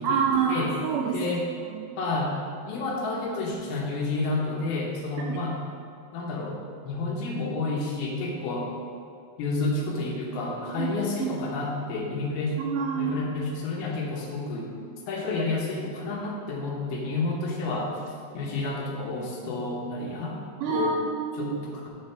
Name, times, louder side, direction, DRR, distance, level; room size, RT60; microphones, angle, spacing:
voice 1, 0.0-1.2 1.7-2.0 5.2-5.4 10.8-10.9 11.2-11.4 12.6-13.2 20.6-21.6, right 6 dB, 75° right, -2 dB, 2.0 m, -27 dB
voice 2, 1.1-1.5 2.0-2.4 2.7-5.6 6.1-6.5 6.8-8.7 9.4-12.6 12.9-14.7 15.1-17.9 18.3-20.4 20.7-21.0 21.4-21.9, left 3 dB, 75° left, -2 dB, 3.2 m, -30 dB
10.5 x 6.6 x 4.5 m, 2.4 s
omnidirectional pair, 4.4 m